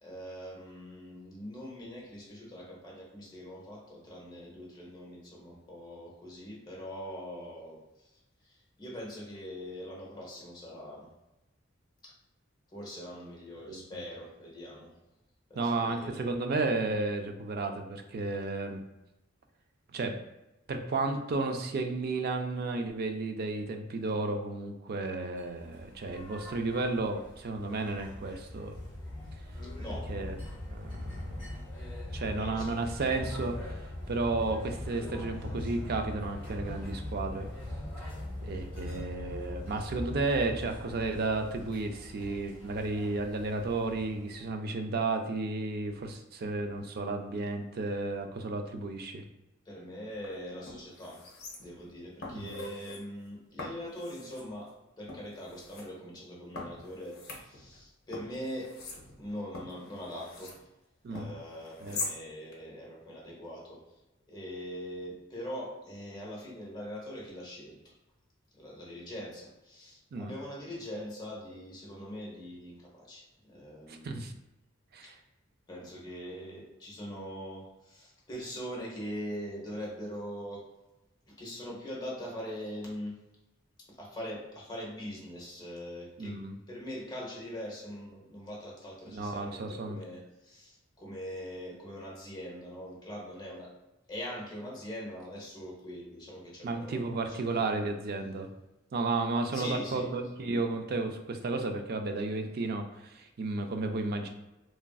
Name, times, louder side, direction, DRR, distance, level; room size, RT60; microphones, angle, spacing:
voice 1, 0.0-8.1 8.4-11.1 12.0-12.1 12.7-14.9 15.5-16.3 29.6-30.3 32.3-33.0 49.6-51.2 51.6-58.7 59.2-60.6 61.1-63.8 64.3-68.0 68.5-74.2 75.0-75.1 75.7-80.6 81.3-83.1 84.0-86.4 86.7-93.7 94.1-97.9 99.5-100.1, equal, 20° left, -3 dB, 0.8 m, -42 dB
voice 2, 15.6-18.8 19.9-20.2 20.7-28.7 30.1-30.4 30.7-31.3 32.1-33.8 34.1-37.5 38.4-49.2 52.3-52.5 61.0-61.3 61.8-62.0 70.1-70.3 73.9-74.3 74.9-75.1 86.2-86.6 89.1-90.0 96.6-98.5 98.9-104.3, right 3 dB, 50° right, 5 dB, 0.3 m, -33 dB
sound 1, 25.3-44.5, left 1 dB, 10° right, 1.1 m, -41 dB
sound 2, 50.1-50.3 50.7-51.9 52.2-53.0 53.6-54.5 55.1-55.9 56.6-57.8 58.1-60.6 61.1-62.2 62.5-62.6, left 3 dB, 55° left, 0.6 m, -42 dB
3.1 x 2.5 x 2.2 m, 0.97 s
head